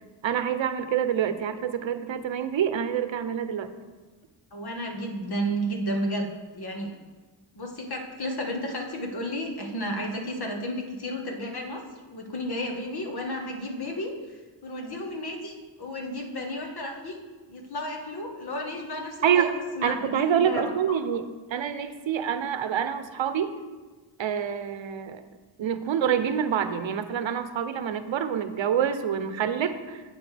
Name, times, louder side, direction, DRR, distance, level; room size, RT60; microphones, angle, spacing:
voice 1, 0.2-3.7 19.2-19.5 19.8-21.2 21.5-23.6 24.2-25.2 25.6-30.0, right 8 dB, 75° right, 10 dB, 0.8 m, -26 dB
voice 2, 4.5-7.0 7.5-11.8 12.1-17.2 17.5-21.0, equal, 55° left, 2 dB, 1.5 m, -32 dB
11.5 x 8.0 x 3.4 m, 1.3 s
wide cardioid pair, 135°, 46 cm